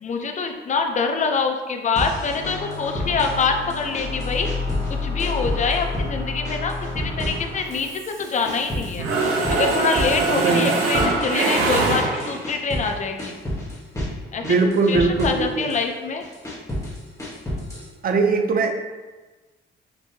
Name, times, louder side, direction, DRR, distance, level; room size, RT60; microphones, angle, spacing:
voice 1, 0.0-4.5 5.0-9.1 9.5-13.3 14.3-16.2, left 4 dB, 40° left, 4 dB, 0.5 m, -25 dB
sound 1, 2.0-3.5 3.7-4.9 5.2-6.1 6.5-7.9 8.2-12.9 13.2-14.2 14.4-15.8 16.2-17.9, equal, 15° left, 1.2 m, -31 dB
sound 2, 2.2-7.9, left 3 dB, 85° left, 1.4 m, -30 dB
Mechanisms, 7.8-8.7 9.0-12.5, right 3 dB, 90° right, 0.7 m, -23 dB
voice 2, 10.4-10.8 14.4-15.7 18.0-18.7, right 4 dB, 45° right, 5 dB, 0.5 m, -20 dB
5.2 x 2.7 x 2.7 m, 1.2 s
cardioid pair, 90°, 20 cm